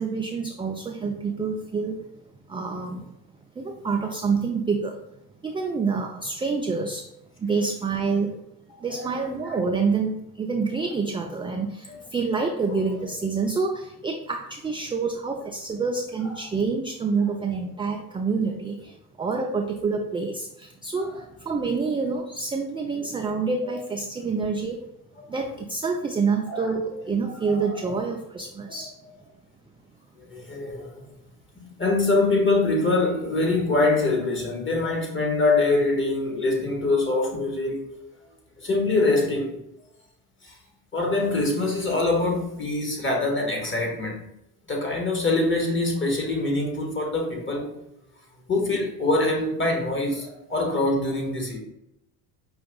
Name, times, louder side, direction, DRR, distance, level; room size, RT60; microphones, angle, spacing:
voice 1, 0.0-2.0 2.5-3.1 3.6-5.0 5.4-7.1 7.4-8.3 8.8-24.8 25.3-28.9, right 4 dB, 15° right, 0.3 m, -27 dB
voice 2, 9.0-9.6 11.9-12.0 26.5-26.7 27.4-28.0 28.7-28.8 30.3-31.1 31.6-37.9 38.6-39.5 40.4-40.5 40.9-44.2 44.7-47.7 48.5-51.6, left 2 dB, 25° left, 1.7 m, -24 dB
5.5 x 2.6 x 3.7 m
supercardioid pair, 75°, 46 cm